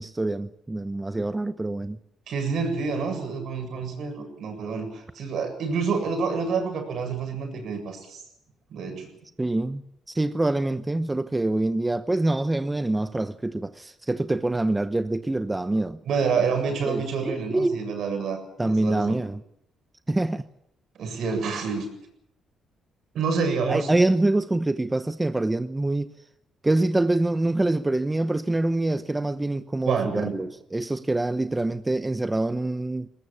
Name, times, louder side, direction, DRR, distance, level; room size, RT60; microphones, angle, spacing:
voice 1, 0.0-2.0 9.4-9.8 10.1-16.0 16.9-17.8 18.6-19.4 20.1-20.4 23.7-26.1 26.6-33.1, right 2 dB, 15° right, 0.9 m, -25 dB
voice 2, 2.3-8.2 8.7-9.1 16.1-19.2 20.9-21.9 23.1-23.9 29.9-30.4, right 5 dB, 70° right, 7.5 m, -28 dB
21.5 x 19.5 x 8.8 m
cardioid pair, 90°, 0 cm